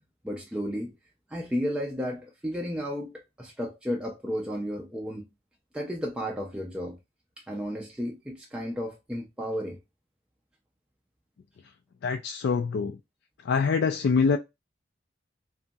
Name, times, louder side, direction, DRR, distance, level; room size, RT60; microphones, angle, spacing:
voice 1, 0.2-1.0 1.3-5.3 5.7-7.0 7.4-9.8, equal, 5° right, 0.4 m, -33 dB
voice 2, 12.0-13.0 13.4-14.4, left 5 dB, 60° left, 0.3 m, -25 dB
2.8 x 2.6 x 2.2 m
head